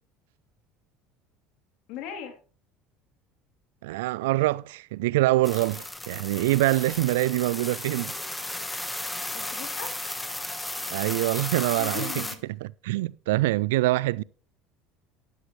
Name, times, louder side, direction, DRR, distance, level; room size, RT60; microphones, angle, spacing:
voice 1, 1.9-2.4 9.3-10.0 11.8-12.4, left 7 dB, 70° left, 3.1 m, -38 dB
voice 2, 3.8-8.1 10.9-12.3 12.6-14.2, right 18 dB, 85° right, 0.4 m, -25 dB
sound 1, 5.4-12.4, left 2 dB, 10° left, 1.1 m, -34 dB
12.0 x 9.7 x 3.2 m
supercardioid pair, 100°, 0 cm